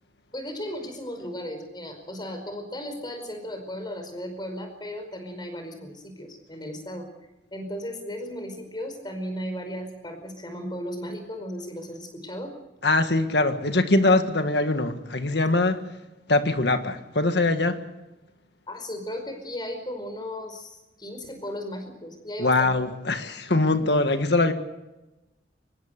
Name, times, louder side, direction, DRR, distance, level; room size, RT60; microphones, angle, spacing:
voice 1, 0.3-7.1 7.5-12.5 18.7-22.7, equal, 25° left, 5.0 m, -35 dB
voice 2, 12.8-15.8 16.3-17.8 22.4-24.5, left 2 dB, 70° left, 1.7 m, -22 dB
25.0 x 20.5 x 6.7 m
head